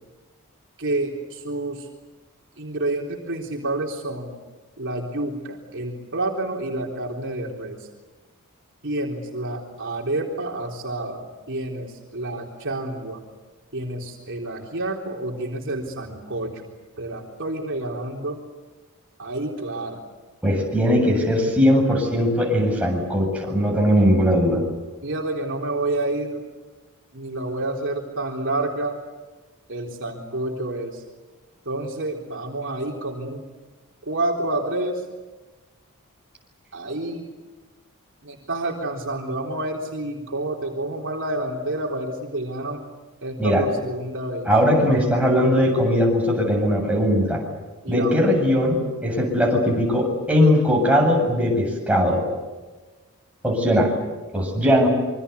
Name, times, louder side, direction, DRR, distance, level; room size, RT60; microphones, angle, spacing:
voice 1, 0.8-1.8 2.6-4.4 4.8-7.8 8.8-13.2 13.7-16.5 17.0-18.4 19.2-20.0 25.0-26.4 27.1-29.0 29.7-31.0 31.7-33.4 34.1-35.0 36.7-37.3 38.2-42.8 43.2-44.5 47.8-48.3, right 2 dB, 60° right, 0 dB, 3.8 m, -29 dB
voice 2, 20.4-24.6 43.4-43.7 44.4-47.4 47.9-52.2 53.4-53.9 54.3-54.9, equal, 5° right, -1 dB, 7.8 m, -19 dB
27.0 x 24.0 x 8.3 m, 1.2 s
head